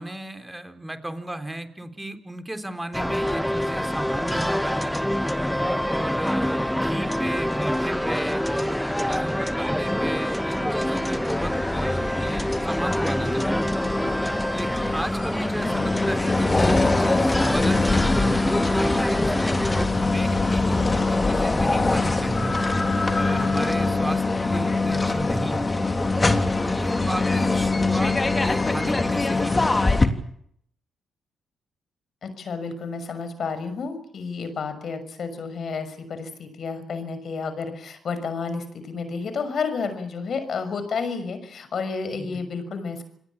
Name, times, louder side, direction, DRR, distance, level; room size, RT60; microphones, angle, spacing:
voice 1, 0.0-5.1 5.8-8.8 9.1-13.6 14.5-22.6 23.2-25.7 26.6-29.8 42.2-42.6, right 1 dB, 10° right, 8 dB, 3.9 m, -34 dB
sound 1, 2.9-19.9, equal, 5° left, 1.4 m, -26 dB
sound 2, 11.2-30.1, left 3 dB, 30° left, 3.3 m, -23 dB
voice 2, 32.2-43.0, left 5 dB, 60° left, 10 dB, 6.2 m, -31 dB
29.0 x 19.0 x 7.3 m, 0.66 s
hypercardioid pair, 45°, 0 cm